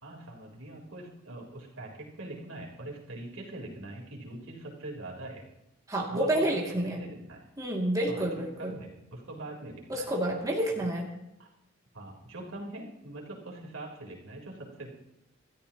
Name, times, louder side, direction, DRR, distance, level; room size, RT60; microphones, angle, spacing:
voice 1, 0.0-5.5 6.1-7.5 8.1-10.1 10.7-11.1 11.4-11.5 11.9-14.9, right 2 dB, 80° right, -1 dB, 3.9 m, -43 dB
voice 2, 5.9-7.0 7.6-8.7 9.9-11.1, right 1 dB, 15° right, -3 dB, 2.4 m, -29 dB
27.5 x 13.5 x 3.0 m, 0.89 s
head